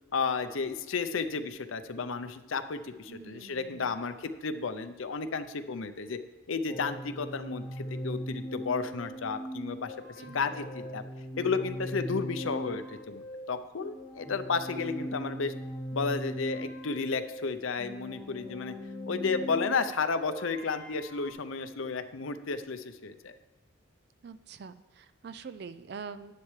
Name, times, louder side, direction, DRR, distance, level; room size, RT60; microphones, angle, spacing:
voice 1, 0.1-6.2 6.5-11.0 11.4-15.5 15.9-18.7 19.1-23.4, left 4 dB, 75° left, 10 dB, 0.6 m, -32 dB
voice 2, 3.1-4.0 10.2-10.5 24.2-26.3, right 5 dB, 50° right, 12 dB, 0.4 m, -45 dB
sound 1, 6.7-21.3, equal, 5° left, 1.3 m, -40 dB
10.5 x 9.7 x 3.2 m, 1.2 s
head